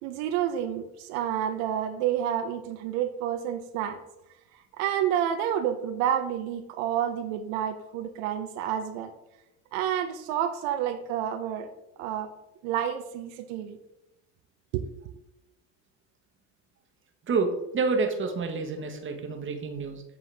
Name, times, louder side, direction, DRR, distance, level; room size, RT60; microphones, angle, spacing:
voice 1, 0.0-4.0 4.8-9.1 9.7-11.7 12.0-12.3 12.6-13.8 14.7-14.9, right 10 dB, 80° right, 7 dB, 0.6 m, -29 dB
voice 2, 17.3-20.0, right 4 dB, 30° right, 4 dB, 1.1 m, -28 dB
7.6 x 4.0 x 3.3 m, 0.92 s
supercardioid pair, 100°, 39 cm